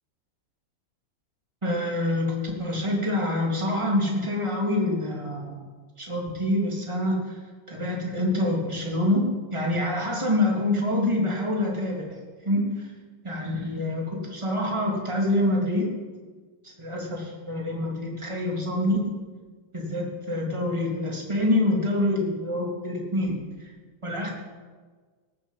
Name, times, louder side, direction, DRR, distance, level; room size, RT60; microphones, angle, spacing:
voice 1, 1.6-5.6 6.0-7.3 7.7-12.0 12.4-12.9 13.2-15.9 16.8-19.1 19.7-23.7 24.0-24.3, left 1 dB, 15° right, -2 dB, 3.2 m, -26 dB
18.5 x 8.8 x 7.6 m, 1.4 s
omnidirectional pair, 2.4 m